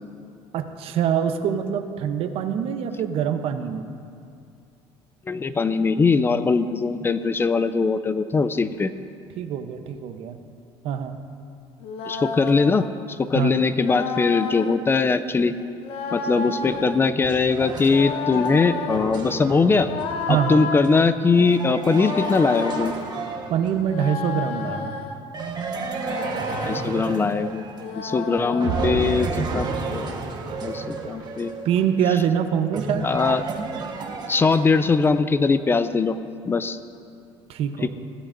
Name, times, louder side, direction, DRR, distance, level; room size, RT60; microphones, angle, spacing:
voice 1, 0.5-3.9 9.4-10.4 10.8-11.2 13.3-13.5 20.3-20.6 23.5-25.0 31.6-33.1 37.5-37.9, right 8 dB, 65° right, 8 dB, 0.8 m, -24 dB
voice 2, 5.3-8.9 12.1-15.5 16.1-19.9 20.3-22.9 26.6-27.6 27.9-30.3 30.6-31.5 33.0-33.4 34.3-36.2 36.5-36.8 37.8-37.9, left 4 dB, 20° left, 12 dB, 0.4 m, -21 dB
sound 1, 11.8-12.9 13.8-14.8 15.8-17.0 17.8-19.1 19.8-20.9 21.8-22.9 23.8-25.2 25.8-26.9 27.8-29.2, left 5 dB, 65° left, 1.0 m, -31 dB
sound 2, 16.6-24.0 25.3-28.2 28.6-35.1, right 4 dB, 40° right, 1.3 m, -32 dB
17.5 x 12.5 x 2.6 m, 2.4 s
cardioid pair, 115°, 11 cm